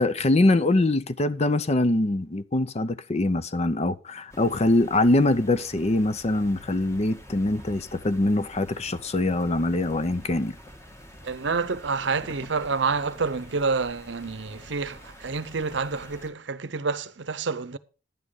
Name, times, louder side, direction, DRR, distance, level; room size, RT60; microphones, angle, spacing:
voice 1, 0.0-10.5, left 2 dB, 35° left, 0.6 m, -23 dB
sound 1, 4.3-16.3, equal, 15° left, 1.6 m, -47 dB
voice 2, 11.2-17.8, right 4 dB, 70° right, 0.7 m, -28 dB
11.0 x 8.7 x 4.9 m
head